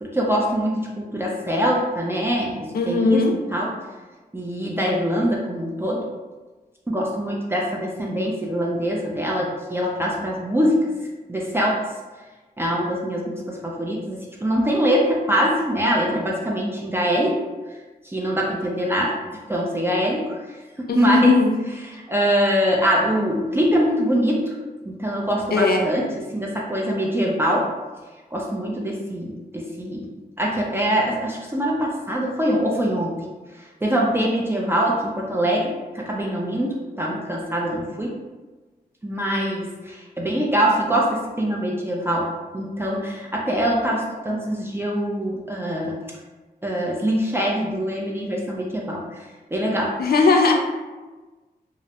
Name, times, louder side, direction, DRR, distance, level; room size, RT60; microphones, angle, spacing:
voice 1, 0.0-3.2 3.5-3.7 4.3-6.1 6.9-10.9 11.3-11.8 12.6-17.4 18.0-19.2 19.5-20.4 20.8-21.3 22.1-24.5 24.8-26.1 26.3-27.7 28.3-30.1 30.4-33.2 33.8-38.1 39.0-46.0 46.6-49.2 49.5-50.0, equal, 15° right, -3 dB, 0.4 m, -23 dB
voice 2, 2.7-3.3 20.9-21.5 25.5-25.9 50.0-50.5, left 3 dB, 65° left, 2 dB, 0.4 m, -18 dB
2.5 x 2.0 x 2.8 m, 1.3 s
cardioid pair, 75°, 17 cm